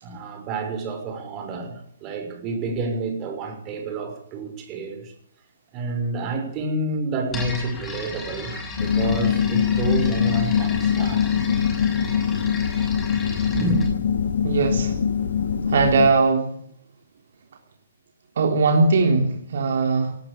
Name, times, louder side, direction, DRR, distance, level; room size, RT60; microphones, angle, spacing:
voice 1, 0.0-5.1 5.7-11.3 13.5-13.8, right 2 dB, 30° right, 6.1 m, -29 dB
sound 1, 7.3-13.9, left 4 dB, 15° left, 6.1 m, -35 dB
sound 2, 8.8-16.1, left 7 dB, 70° left, 1.7 m, -23 dB
voice 2, 14.4-15.0 15.7-16.5 18.4-20.3, right 3 dB, 60° right, 3.5 m, -20 dB
18.0 x 17.5 x 8.7 m
figure-of-eight pair, 130°, 0 cm